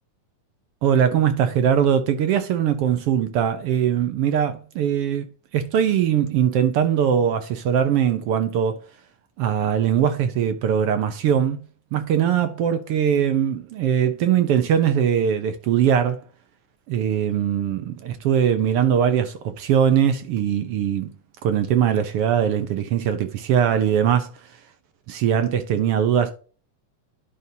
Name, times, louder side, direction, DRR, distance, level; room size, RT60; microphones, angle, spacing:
voice 1, 0.8-5.3 5.5-8.8 9.4-11.6 11.9-16.2 16.9-21.1 21.4-24.5 25.1-26.3, right 8 dB, 70° right, 1.4 m, -21 dB
11.0 x 5.3 x 2.8 m
omnidirectional pair, 3.5 m